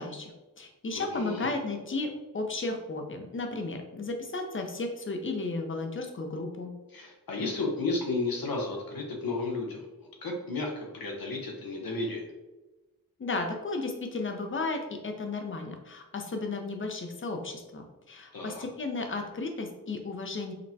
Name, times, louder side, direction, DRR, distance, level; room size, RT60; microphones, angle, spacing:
voice 1, 0.0-6.7 13.2-20.5, left 3 dB, 35° left, 4 dB, 0.6 m, -34 dB
voice 2, 0.9-1.5 6.9-9.9 10.2-12.3 18.3-18.6, left 3 dB, 75° left, 0 dB, 0.9 m, -33 dB
5.1 x 2.1 x 2.7 m, 1.1 s
cardioid pair, 60°, 36 cm